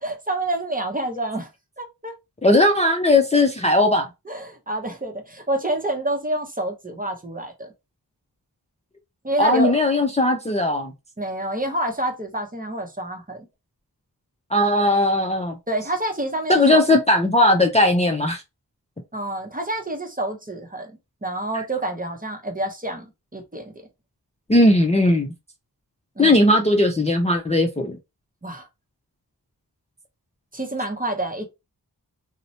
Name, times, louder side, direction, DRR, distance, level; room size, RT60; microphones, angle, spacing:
voice 1, 0.0-1.5 1.8-2.1 4.3-7.7 9.2-9.8 11.2-13.5 15.7-16.9 19.1-20.9 21.2-23.7 26.2-26.4 28.4-28.7 30.5-31.5, right 1 dB, 20° right, 0.7 m, -28 dB
voice 2, 2.4-4.1 9.4-10.9 14.5-15.6 16.5-18.4 21.5-21.6 24.5-25.3 26.2-28.0, left 1 dB, 15° left, 0.4 m, -18 dB
2.8 x 2.1 x 2.7 m
wide cardioid pair, 45°, 39 cm